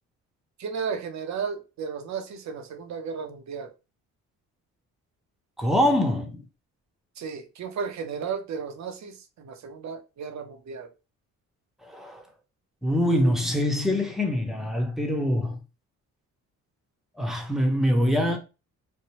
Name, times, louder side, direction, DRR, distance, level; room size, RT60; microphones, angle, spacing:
voice 1, 0.6-3.7 7.2-10.9, right 6 dB, 60° right, 0.7 m, -34 dB
voice 2, 5.6-6.4 11.8-12.2 12.8-15.6 17.2-18.4, left 1 dB, ahead, 0.9 m, -24 dB
3.2 x 2.2 x 2.9 m
cardioid pair, 80°, 32 cm